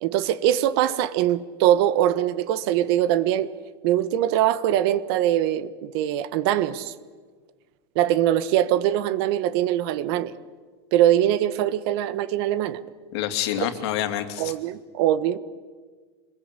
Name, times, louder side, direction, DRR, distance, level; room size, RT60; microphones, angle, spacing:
voice 1, 0.0-3.5 3.8-6.9 7.9-10.3 10.9-12.8 14.4-15.4, right 12 dB, 65° right, 14 dB, 1.4 m, -22 dB
voice 2, 13.1-14.5, left 12 dB, 75° left, 8 dB, 2.6 m, -27 dB
26.0 x 21.5 x 8.4 m, 1.5 s
supercardioid pair, 130°, 14 cm